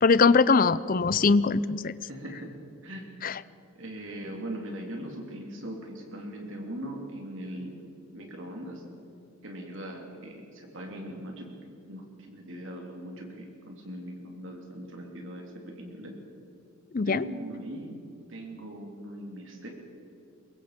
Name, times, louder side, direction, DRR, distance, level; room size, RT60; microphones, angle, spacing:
voice 1, 0.0-1.9 3.2-3.4 16.9-17.2, left 4 dB, 40° left, 17 dB, 0.5 m, -21 dB
voice 2, 2.1-2.5 2.8-3.1 3.8-7.7 8.1-8.8 9.4-11.6 11.9-16.1 17.0-17.9 18.3-19.7, right 1 dB, 60° right, 1 dB, 3.5 m, -40 dB
22.5 x 22.5 x 5.2 m, 2.6 s
head